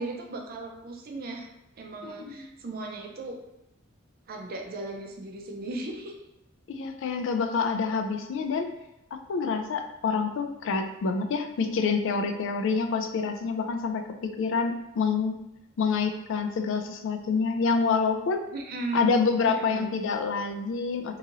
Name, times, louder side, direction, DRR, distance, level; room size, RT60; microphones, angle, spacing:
voice 1, 0.0-1.5 1.8-3.4 4.3-6.1 18.5-20.0, right 3 dB, 45° right, 1 dB, 0.5 m, -35 dB
voice 2, 2.0-2.5 6.7-8.7 9.1-15.4 15.8-18.4 18.9-21.2, left 5 dB, 65° left, 7 dB, 0.3 m, -27 dB
2.9 x 2.7 x 2.5 m, 0.89 s
head